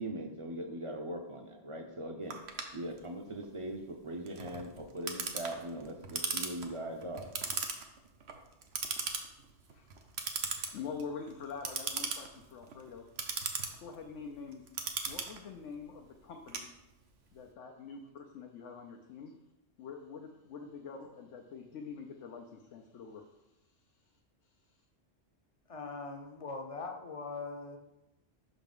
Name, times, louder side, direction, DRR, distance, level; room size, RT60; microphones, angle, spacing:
voice 1, 0.0-2.4 2.7-7.3, right 1 dB, 35° right, 4 dB, 0.6 m, -40 dB
Clock, 2.3-17.2, right 5 dB, 65° right, 1.0 m, -39 dB
voice 2, 10.4-13.0 13.8-14.6 15.1-16.7 17.3-18.0 18.3-19.3 19.8-23.3, left 5 dB, 85° left, 2 dB, 1.0 m, -45 dB
voice 3, 25.7-27.8, left 3 dB, 35° left, 4 dB, 0.7 m, -41 dB
5.7 x 4.0 x 5.3 m, 0.91 s
omnidirectional pair, 1.2 m